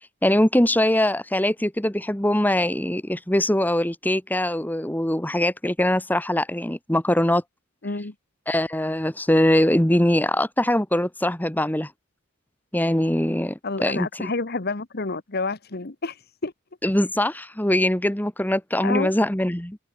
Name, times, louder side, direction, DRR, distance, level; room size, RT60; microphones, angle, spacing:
voice 1, 0.2-7.4 8.5-11.9 12.7-14.3 16.8-19.8, left 1 dB, 10° left, 1.4 m, -22 dB
voice 2, 7.8-8.1 13.6-16.5 18.8-19.1, left 3 dB, 45° left, 1.2 m, -29 dB
head